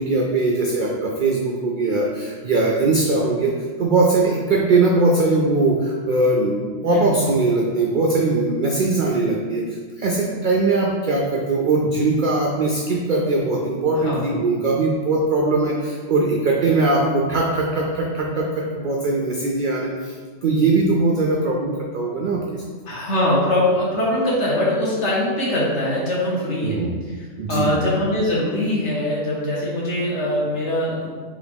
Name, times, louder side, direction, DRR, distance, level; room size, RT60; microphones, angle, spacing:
voice 1, 0.0-9.6 10.0-20.2 20.4-22.4 26.6-26.9 27.4-27.7, right 3 dB, 70° right, -1 dB, 0.4 m, -20 dB
voice 2, 6.8-7.1 13.9-14.3 22.8-26.8 27.1-31.1, left 1 dB, 60° left, -6 dB, 1.4 m, -22 dB
3.7 x 3.5 x 3.4 m, 1.6 s
omnidirectional pair, 1.4 m